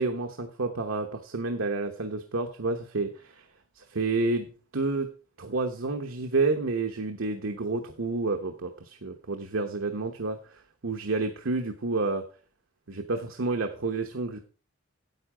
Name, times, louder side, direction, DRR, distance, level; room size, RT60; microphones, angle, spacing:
voice 1, 0.0-3.4 3.8-5.1 5.4-12.2 12.9-14.4, right 3 dB, 80° right, 4 dB, 1.1 m, -30 dB
9.6 x 8.3 x 5.0 m, 0.37 s
head